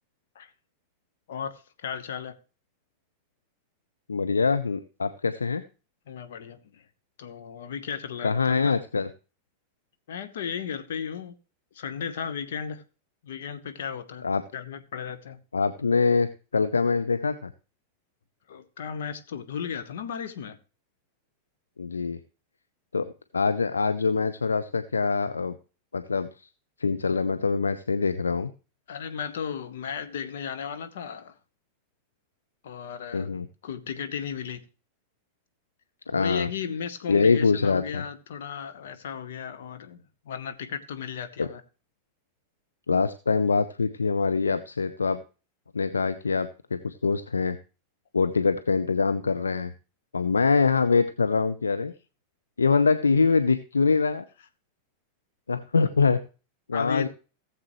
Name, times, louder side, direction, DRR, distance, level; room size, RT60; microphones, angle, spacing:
voice 1, 1.3-2.3 6.1-6.8 7.2-8.7 10.1-11.3 11.7-12.8 13.2-14.3 14.5-15.4 18.5-20.6 28.9-31.3 32.6-33.3 33.6-34.6 36.1-41.6 56.7-57.1, left 7 dB, 60° left, 1.2 m, -35 dB
voice 2, 4.1-5.6 8.2-9.1 14.2-14.4 15.5-17.5 21.8-22.2 22.9-25.5 25.9-26.5 26.8-28.5 33.1-33.5 36.1-36.5 37.1-38.0 41.4-41.5 42.9-45.2 45.7-47.6 48.1-49.7 50.1-51.9 52.6-54.2 55.5-56.2 56.7-57.1, left 4 dB, 75° left, 0.5 m, -24 dB
17.5 x 7.4 x 3.1 m
figure-of-eight pair, 90°, 0 cm